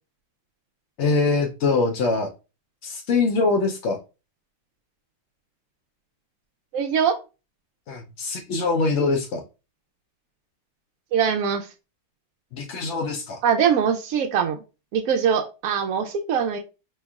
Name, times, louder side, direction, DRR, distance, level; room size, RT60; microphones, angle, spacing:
voice 1, 1.0-2.3 2.8-4.0 7.9-9.4 12.5-13.4, left 3 dB, 80° left, 2 dB, 0.6 m, -23 dB
voice 2, 6.7-7.2 11.1-11.7 13.4-14.6 14.9-16.6, right 7 dB, 75° right, 3 dB, 0.8 m, -22 dB
4.6 x 3.2 x 2.3 m, 0.29 s
omnidirectional pair, 1.9 m